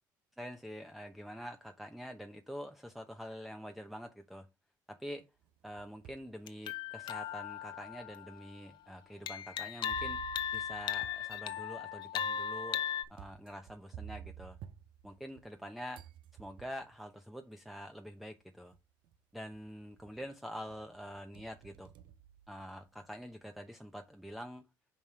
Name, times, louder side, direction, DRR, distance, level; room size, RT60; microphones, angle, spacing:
voice 1, 0.4-4.5 4.9-5.3 5.6-10.2 10.5-12.8 13.1-14.6 15.0-16.1 16.4-18.7 19.3-21.9 22.5-24.7, equal, ahead, 0.9 m, -46 dB
sound 1, 5.4-6.3 6.9-7.0 7.9-8.0 9.9-15.6 15.9-17.0 18.1-18.2 18.7-19.2 19.5-20.3 20.7-23.1, right 9 dB, 70° right, 0.7 m, -52 dB
sound 2, 6.5-8.7 9.3-13.0, left 8 dB, 65° left, 0.9 m, -37 dB
5.5 x 5.4 x 4.6 m
supercardioid pair, 75°, 9 cm